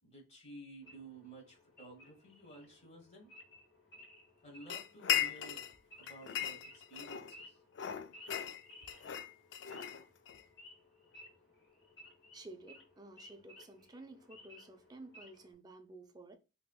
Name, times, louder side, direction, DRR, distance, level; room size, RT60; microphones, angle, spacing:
voice 1, 0.0-3.3 4.4-5.6 6.0-7.6, right 2 dB, 35° left, 1.3 m, -53 dB
Wild animals / Idling, 0.8-15.5, left 1 dB, 75° left, 1.8 m, -59 dB
sound 1, 4.7-5.8 6.1-7.4 7.7-10.4, left 10 dB, 90° left, 0.4 m, -37 dB
voice 2, 12.3-16.4, right 2 dB, 20° right, 0.5 m, -53 dB
3.7 x 2.8 x 2.2 m
head